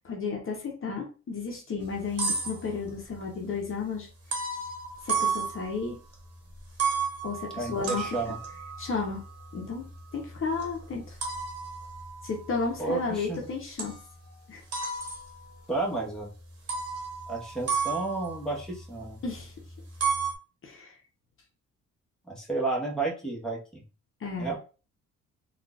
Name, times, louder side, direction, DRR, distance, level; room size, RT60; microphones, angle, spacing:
voice 1, 0.0-4.1 5.0-6.0 7.2-8.1 8.8-9.2 9.5-9.8 10.1-11.2 12.2-14.0 14.5-14.6 19.2-19.5 20.6-20.9 24.2-24.5, left 4 dB, 45° left, 0 dB, 0.8 m, -33 dB
sound 1, 1.8-3.1 4.3-6.1 6.6-13.4 13.8-14.3 14.7-15.7 16.1-16.2 16.7-19.4 19.7-20.4, right 5 dB, 55° right, 1.2 m, -33 dB
voice 2, 7.5-8.4 12.8-13.4 15.7-16.3 17.3-19.2 22.3-23.8 24.4-24.6, right 3 dB, ahead, -4 dB, 1.2 m, -31 dB
3.7 x 2.4 x 2.4 m, 0.34 s
cardioid pair, 90°, 30 cm